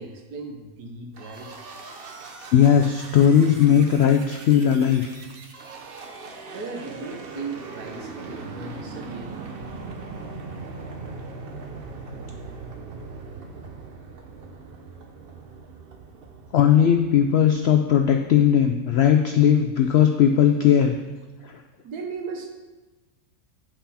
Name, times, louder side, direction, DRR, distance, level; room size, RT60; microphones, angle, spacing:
voice 1, 0.0-1.7 6.5-9.4 21.8-22.5, right 4 dB, 80° right, 2 dB, 1.6 m, -36 dB
sound 1, 1.1-17.8, right 4 dB, 50° right, 0.8 m, -40 dB
voice 2, 2.5-5.1 16.5-21.0 21.4-21.6, left 9 dB, 85° left, 5 dB, 0.5 m, -18 dB
8.6 x 5.7 x 4.2 m, 1.2 s
omnidirectional pair, 1.6 m